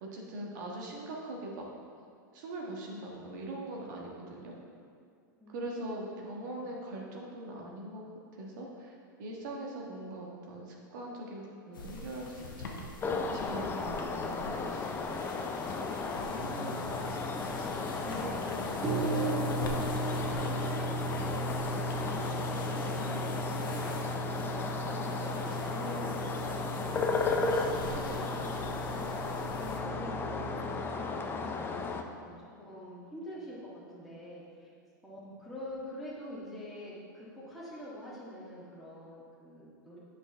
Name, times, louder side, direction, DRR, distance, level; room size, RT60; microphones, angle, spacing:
voice 1, 0.0-1.6 2.3-4.5 5.5-8.0 8.3-14.9, right 1 dB, 60° right, -2 dB, 1.5 m, -42 dB
voice 2, 5.4-6.7 15.6-23.9 24.4-29.1 29.6-31.2 32.1-34.7 35.0-40.0, left 1 dB, ahead, -9 dB, 1.7 m, -46 dB
sound 1, 11.7-29.8, left 3 dB, 80° left, 1.0 m, -45 dB
sound 2, 13.0-32.0, left 4 dB, 20° left, 0.5 m, -35 dB
sound 3, 16.4-30.8, right 2 dB, 30° right, 1.9 m, -37 dB
8.0 x 5.8 x 3.5 m, 2.2 s
hypercardioid pair, 105°, 11 cm